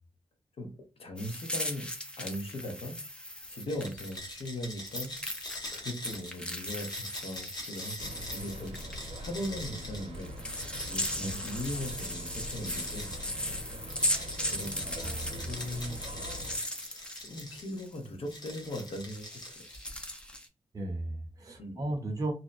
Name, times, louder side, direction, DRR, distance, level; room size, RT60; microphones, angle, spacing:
voice 1, 1.0-3.0 3.5-5.2 5.7-8.8 9.2-10.3 10.9-13.1 14.5-16.0 16.9-19.6 21.6-21.8, left 1 dB, 70° left, 0.8 m, -39 dB
sound 1, 1.2-4.5 4.9-8.9 10.1-18.0 18.3-20.5, left 1 dB, 10° left, 0.5 m, -37 dB
sound 2, 3.6-13.4 13.9-17.8 18.3-20.1, left 1 dB, 40° left, 0.9 m, -44 dB
sound 3, 8.0-16.6, equal, 75° right, 0.7 m, -43 dB
voice 2, 14.8-15.5 20.7-22.3, right 2 dB, 35° right, 0.7 m, -35 dB
2.7 x 2.1 x 2.4 m
wide cardioid pair, 145°, 10 cm